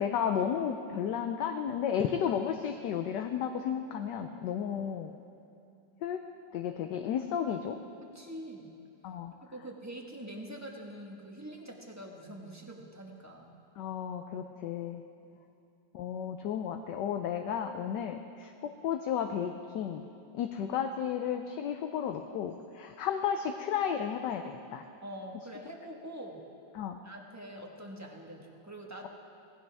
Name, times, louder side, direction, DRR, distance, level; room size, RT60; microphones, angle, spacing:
voice 1, 0.0-5.1 6.0-6.2 6.5-7.8 9.0-9.3 13.8-15.0 15.9-20.0 20.3-24.8 26.7-27.0, left 8 dB, 70° left, 5 dB, 1.2 m, -33 dB
voice 2, 8.0-8.7 9.5-13.6 25.0-26.4 27.0-29.1, right 1 dB, 10° right, 0 dB, 1.0 m, -44 dB
17.5 x 16.0 x 3.5 m, 2.7 s
omnidirectional pair, 2.1 m